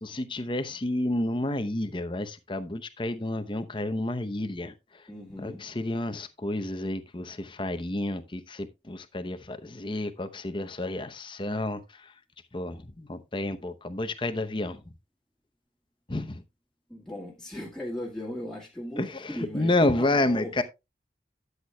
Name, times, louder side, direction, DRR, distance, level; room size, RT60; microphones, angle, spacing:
voice 1, 0.0-4.7 5.4-11.8 12.5-14.8 16.1-16.4 19.0-20.6, left 2 dB, 30° left, 0.8 m, -30 dB
voice 2, 5.1-5.6 16.9-20.6, left 1 dB, 5° left, 1.9 m, -38 dB
12.5 x 8.1 x 2.3 m
head